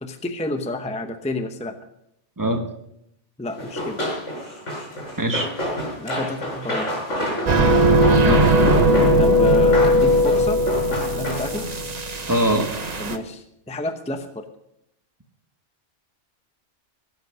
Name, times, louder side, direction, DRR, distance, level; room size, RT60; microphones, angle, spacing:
voice 1, 0.0-1.8 3.4-4.0 5.9-6.9 9.2-10.6 10.9-11.7 13.0-14.4, left 2 dB, 5° left, 7 dB, 0.8 m, -30 dB
Run, 3.6-11.7, equal, 90° left, 5.6 m, -29 dB
voice 2, 5.2-5.5 8.3-8.5 12.3-12.7, right 1 dB, 15° right, 4 dB, 1.5 m, -22 dB
sound 1, 7.5-13.2, equal, 35° right, 1.0 m, -18 dB
17.0 x 8.0 x 6.3 m, 0.78 s
omnidirectional pair, 1.2 m